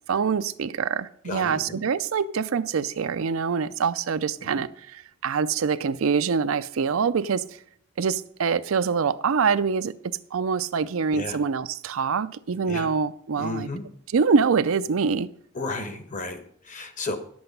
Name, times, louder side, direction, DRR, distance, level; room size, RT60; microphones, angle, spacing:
voice 1, 0.0-7.6 8.0-9.9 10.3-13.7 14.1-15.3, right 5 dB, 70° right, 0.5 m, -25 dB
voice 2, 1.2-1.8 4.5-4.6 11.1-11.4 12.7-12.9 13.4-13.8 15.5-17.2, left 2 dB, 35° left, 1.2 m, -33 dB
11.0 x 7.8 x 5.4 m
head